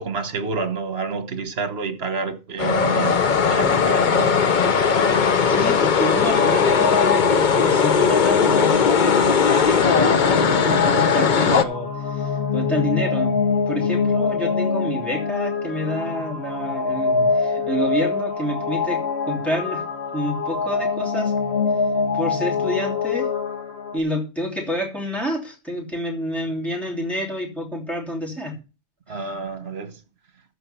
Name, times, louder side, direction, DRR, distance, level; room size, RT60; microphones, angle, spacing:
voice 1, 0.0-4.4 29.1-30.0, right 4 dB, 70° right, 1.6 m, -29 dB
sound 1, 2.6-11.6, left 6 dB, 50° left, 0.8 m, -18 dB
voice 2, 5.5-13.3 13.7-19.8 20.1-21.3 22.1-23.3 23.9-28.6, equal, ahead, 3.0 m, -28 dB
sound 2, 6.2-24.0, left 5 dB, 75° left, 1.7 m, -24 dB
14.0 x 4.6 x 6.9 m
omnidirectional pair, 1.1 m